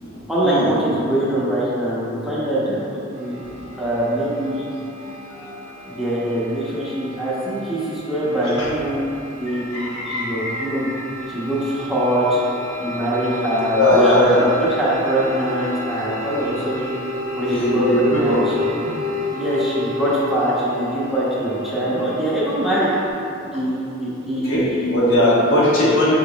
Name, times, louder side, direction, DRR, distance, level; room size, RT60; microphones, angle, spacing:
voice 1, 0.3-2.8 3.2-3.4 3.8-4.7 5.9-9.0 9.4-10.8 11.3-12.4 12.8-16.9 17.4-18.5 19.3-22.9 23.5-24.9 25.8-25.9, right 1 dB, ahead, -10 dB, 1.0 m, -23 dB
sound 1, 3.1-23.1, left 1 dB, 40° right, 0.6 m, -32 dB
voice 2, 9.7-10.9 13.8-14.4 17.4-18.4 19.0-19.1 24.4-24.6 24.9-26.1, left 1 dB, 75° left, -7 dB, 1.2 m, -19 dB
6.1 x 3.7 x 2.3 m, 2.7 s
head